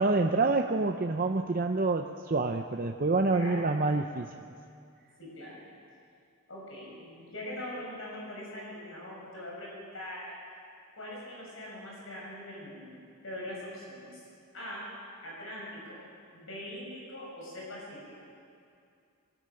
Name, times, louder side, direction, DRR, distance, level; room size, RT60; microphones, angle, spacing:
voice 1, 0.0-4.3, right 3 dB, 40° right, 4 dB, 0.6 m, -27 dB
voice 2, 5.2-5.6 6.5-10.3 10.9-14.2 14.5-14.8 15.2-16.0 16.3-18.0, left 1 dB, 65° left, -4 dB, 6.7 m, -42 dB
22.0 x 13.0 x 8.9 m, 2.4 s
head